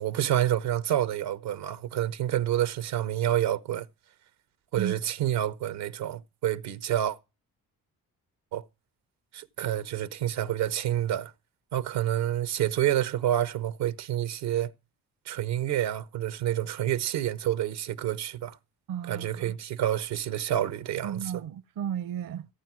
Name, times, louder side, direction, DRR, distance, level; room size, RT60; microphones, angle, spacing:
voice 1, 0.0-3.9 4.7-7.2 8.5-8.6 9.3-11.3 11.7-14.7 15.3-18.6 19.1-21.2, right 12 dB, 90° right, 0.8 m, -28 dB
voice 2, 18.9-19.6 21.0-22.5, right 9 dB, 60° right, 0.6 m, -34 dB
15.5 x 9.1 x 6.0 m
supercardioid pair, 55°, 39 cm